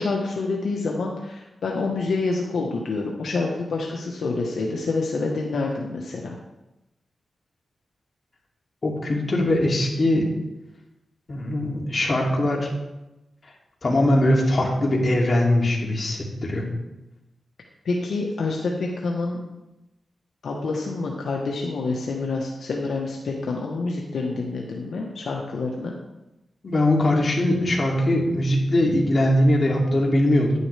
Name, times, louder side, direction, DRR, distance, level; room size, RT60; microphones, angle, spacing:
voice 1, 0.0-6.3 17.8-19.4 20.4-25.9, left 3 dB, 80° left, -1 dB, 1.2 m, -27 dB
voice 2, 8.8-10.3 11.3-12.7 13.8-16.7 26.6-30.5, left 1 dB, 45° left, -2 dB, 2.6 m, -21 dB
10.5 x 9.6 x 3.4 m, 0.97 s
cardioid pair, 70°, 0 cm